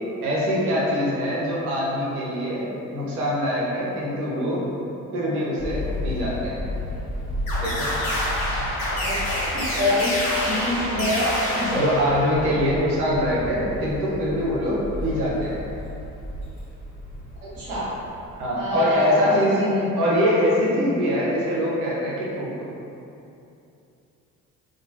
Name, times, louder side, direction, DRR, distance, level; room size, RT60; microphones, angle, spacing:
voice 1, 0.2-2.7 2.9-4.6 5.1-6.6 7.6-7.9 11.7-15.6 18.4-19.6 20.0-22.7, equal, 85° right, -6 dB, 0.6 m, -23 dB
sound 1, 5.6-18.5, left 1 dB, 20° left, 1.2 m, -34 dB
sound 2, 7.5-12.6, left 1 dB, 65° left, 0.8 m, -27 dB
voice 2, 9.5-11.9 17.5-17.9 18.6-20.0, left 1 dB, 70° right, -10 dB, 1.0 m, -26 dB
2.9 x 2.2 x 2.6 m, 2.8 s
figure-of-eight pair, 45°, 43 cm